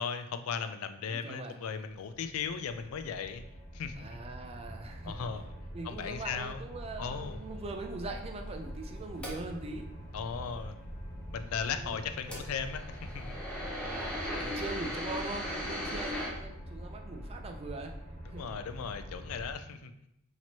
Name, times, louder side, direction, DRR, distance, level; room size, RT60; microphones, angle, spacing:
voice 1, 0.0-3.4 3.7-4.2 5.0-5.5 5.8-6.6 7.0-7.4 10.1-10.8 11.3-13.4 18.3-19.9, left 6 dB, 75° left, 9 dB, 0.3 m, -37 dB
voice 2, 1.1-1.6 4.0-9.9 11.6-12.0 13.8-17.9 18.3-18.5, right 2 dB, 30° right, 3 dB, 0.4 m, -42 dB
sound 1, 1.9-19.5, equal, 50° left, 1.1 m, -44 dB
sound 2, 7.3-9.8 12.1-16.3, equal, 5° left, 0.8 m, -38 dB
4.3 x 2.9 x 2.9 m, 0.80 s
head